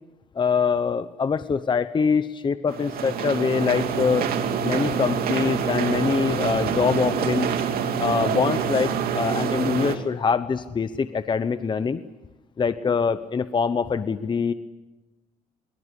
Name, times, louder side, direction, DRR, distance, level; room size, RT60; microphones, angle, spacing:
voice 1, 0.3-4.3 4.6-7.5 8.0-12.0 12.6-14.5, left 5 dB, 30° left, 12 dB, 0.9 m, -24 dB
sound 1, 2.7-10.0, right 7 dB, 65° right, 2.9 m, -26 dB
23.5 x 22.5 x 8.4 m, 1.1 s
cardioid pair, 110°, 17 cm